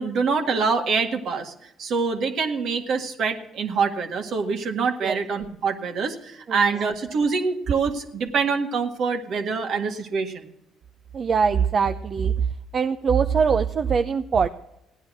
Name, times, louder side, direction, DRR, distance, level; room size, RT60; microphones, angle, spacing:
voice 1, 0.0-10.5, right 5 dB, 65° right, 5 dB, 1.8 m, -25 dB
voice 2, 11.1-12.3 12.7-14.5, right 6 dB, 50° right, 8 dB, 0.7 m, -22 dB
16.5 x 10.0 x 6.2 m, 0.84 s
supercardioid pair, 70°, 0 cm